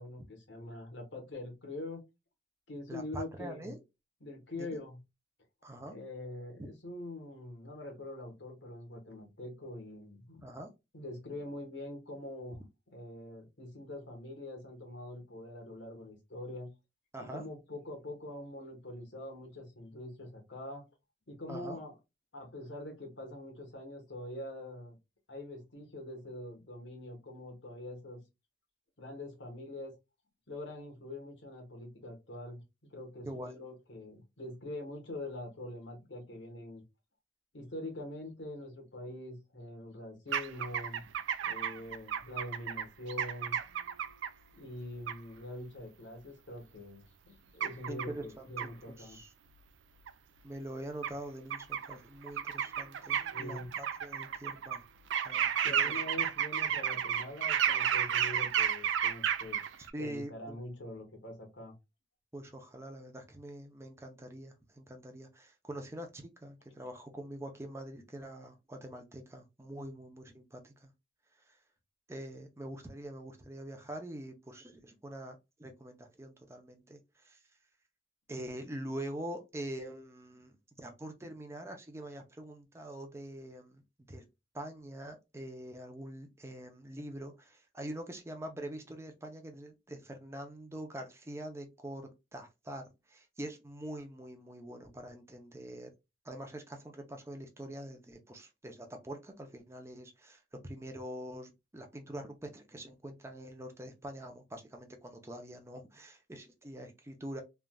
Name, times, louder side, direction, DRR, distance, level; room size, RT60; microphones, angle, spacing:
voice 1, 0.0-2.0 2.7-3.7 4.2-5.0 5.9-10.5 10.9-12.6 12.9-16.7 17.2-20.9 21.3-21.9 22.3-25.0 25.3-28.2 29.0-29.9 30.5-32.6 32.9-36.8 37.5-41.0 41.4-43.6 44.5-49.2 53.3-53.7 55.6-59.6 60.0-61.7, left 1 dB, 80° left, 1.2 m, -44 dB
voice 2, 2.9-3.8 4.6-4.8 5.6-5.9 6.6-6.7 10.4-10.7 17.1-17.4 21.5-21.8 33.2-33.6 47.9-48.7 49.0-49.3 50.4-54.8 55.2-56.0 59.9-60.6 62.3-70.9 71.5-71.6 72.1-77.4 78.3-83.8 84.1-84.3 84.5-95.9 96.2-107.4, right 1 dB, 15° right, 0.5 m, -44 dB
sound 1, 40.3-44.3 45.1-45.2 47.6-48.0 48.6-48.7 50.1-50.2 51.0-51.1 51.5-51.9 52.3-54.8 55.1-59.9, right 9 dB, 90° right, 0.4 m, -32 dB
3.3 x 2.5 x 2.2 m
head